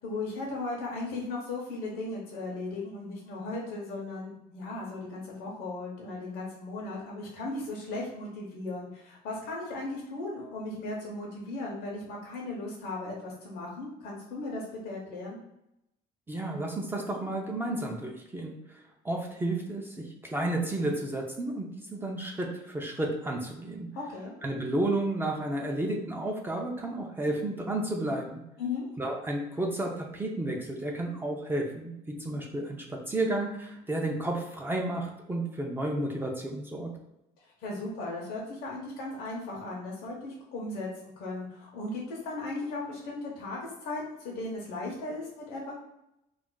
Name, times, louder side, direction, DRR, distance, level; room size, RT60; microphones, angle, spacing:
voice 1, 0.0-15.4 23.9-24.3 28.6-28.9 37.6-45.7, left 2 dB, 85° left, -3 dB, 0.7 m, -37 dB
voice 2, 16.3-23.9 24.4-28.4 29.0-36.9, right 1 dB, 15° right, 0 dB, 0.4 m, -32 dB
2.4 x 2.1 x 3.7 m, 0.84 s
cardioid pair, 120°, 16 cm